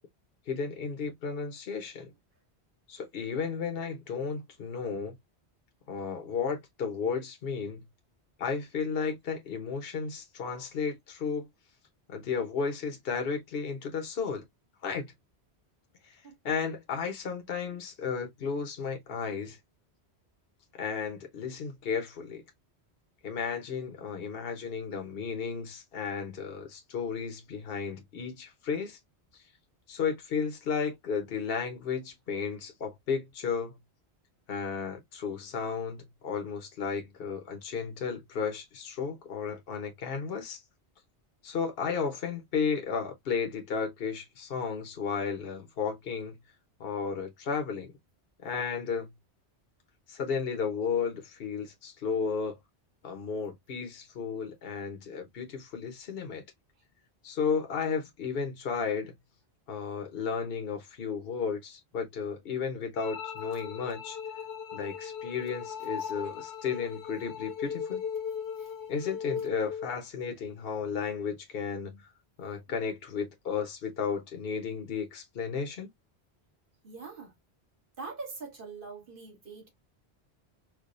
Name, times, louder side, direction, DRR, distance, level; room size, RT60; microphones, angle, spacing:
voice 1, 0.5-2.1 2.9-5.1 5.9-7.8 8.4-11.5 12.1-14.4 14.8-15.1 16.0-16.2 16.4-19.6 20.8-22.4 23.2-29.0 29.3-29.4 29.9-33.7 34.5-40.6 41.4-46.3 46.8-47.9 48.4-49.1 50.1-52.6 53.0-56.4 57.2-59.1 59.7-64.2 64.7-68.0 68.9-72.0 72.4-75.9, left 6 dB, 60° left, 1.1 m, -33 dB
sound 1, 63.0-69.9, left 7 dB, 85° left, 0.9 m, -38 dB
voice 2, 76.8-77.3 78.0-79.7, right 4 dB, 55° right, 1.9 m, -43 dB
4.7 x 2.3 x 2.5 m
omnidirectional pair, 1.1 m